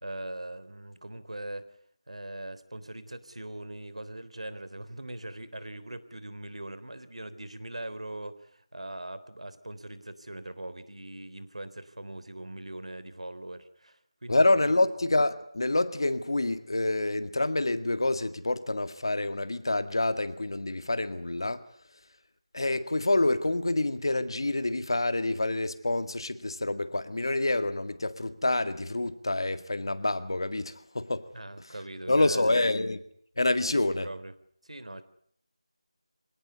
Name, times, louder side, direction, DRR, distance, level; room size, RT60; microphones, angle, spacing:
voice 1, 0.0-1.7 2.1-14.8 31.3-32.6 33.6-34.3 34.6-35.0, right 1 dB, 85° right, 3.6 m, -41 dB
voice 2, 14.3-21.6 22.5-31.2 32.1-33.0 33.4-34.1, left 2 dB, 50° left, 1.9 m, -27 dB
25.5 x 18.5 x 9.6 m
figure-of-eight pair, 180°, 3 cm